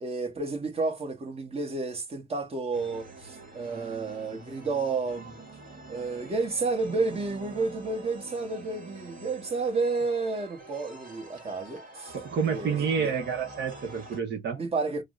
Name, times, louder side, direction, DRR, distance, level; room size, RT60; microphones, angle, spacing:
voice 1, 0.0-5.4 5.9-13.1 14.6-15.0, right 3 dB, 30° right, 1.2 m, -31 dB
sound 1, 2.7-14.2, right 2 dB, 45° right, 1.6 m, -46 dB
voice 2, 12.1-14.6, right 6 dB, 60° right, 0.8 m, -29 dB
4.7 x 2.1 x 2.3 m
cardioid pair, 90°, 20 cm